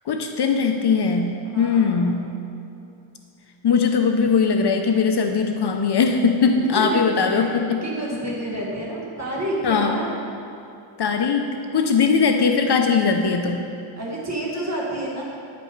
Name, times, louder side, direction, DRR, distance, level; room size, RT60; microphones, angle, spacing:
voice 1, 0.1-2.3 3.6-7.8 9.6-10.0 11.0-13.7, left 5 dB, 55° left, 4 dB, 0.6 m, -20 dB
voice 2, 1.4-2.3 6.7-10.1 14.0-15.2, right 1 dB, 35° right, -4 dB, 1.6 m, -29 dB
8.8 x 5.1 x 4.5 m, 2.7 s
wide cardioid pair, 150°, 48 cm